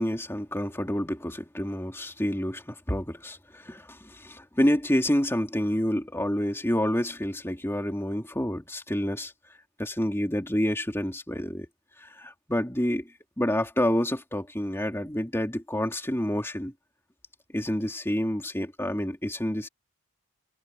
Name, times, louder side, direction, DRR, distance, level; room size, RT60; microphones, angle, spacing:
voice 1, 0.0-9.3 9.8-11.7 12.0-13.1 13.4-16.7 17.5-19.7, equal, 10° left, 2.8 m, -28 dB
head